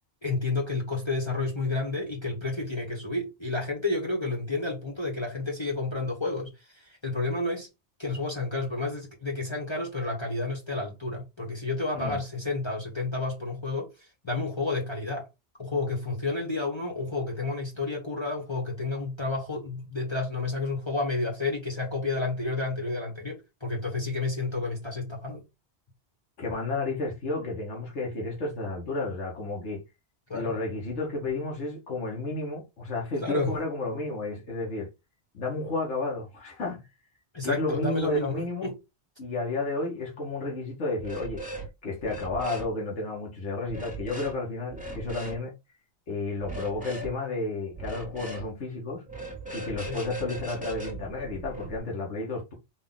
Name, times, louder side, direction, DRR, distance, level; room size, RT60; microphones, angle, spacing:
voice 1, 0.2-7.7 8.0-15.3 15.6-25.4 30.3-30.5 33.2-33.5 37.3-38.3 38.6-38.8 49.9-50.0, left 3 dB, 25° left, 1.1 m, -30 dB
voice 2, 26.4-29.8 30.3-34.9 35.3-36.9 37.4-38.7 39.2-41.4 41.8-45.5 46.1-49.0 49.5-52.5, left 2 dB, 85° left, 1.7 m, -32 dB
sound 1, 41.0-41.7 42.0-42.7 43.7-44.3 44.7-45.4 46.4-47.1 47.8-48.5 49.1-51.8, right 2 dB, 5° right, 1.1 m, -38 dB
4.0 x 2.5 x 3.9 m
omnidirectional pair, 1.1 m